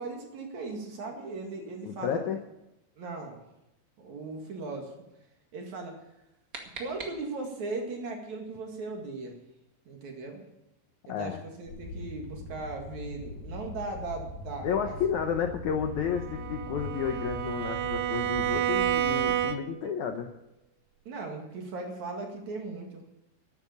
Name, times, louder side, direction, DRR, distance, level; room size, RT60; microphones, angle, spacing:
voice 1, 0.0-2.3 3.0-3.4 4.0-4.9 5.5-6.0 6.8-9.4 9.9-10.5 11.1-14.9 21.1-23.1, right 3 dB, 50° right, 2 dB, 3.0 m, -38 dB
voice 2, 1.9-2.4 11.1-11.4 14.6-20.3, left 7 dB, 80° left, 5 dB, 1.7 m, -31 dB
sound 1, 6.0-7.7, right 3 dB, 35° right, 1.6 m, -45 dB
sound 2, 11.7-19.4, left 2 dB, 50° left, 2.7 m, -41 dB
Bowed string instrument, 16.1-19.9, right 12 dB, 85° right, 2.9 m, -30 dB
12.0 x 9.6 x 8.4 m, 0.90 s
omnidirectional pair, 4.7 m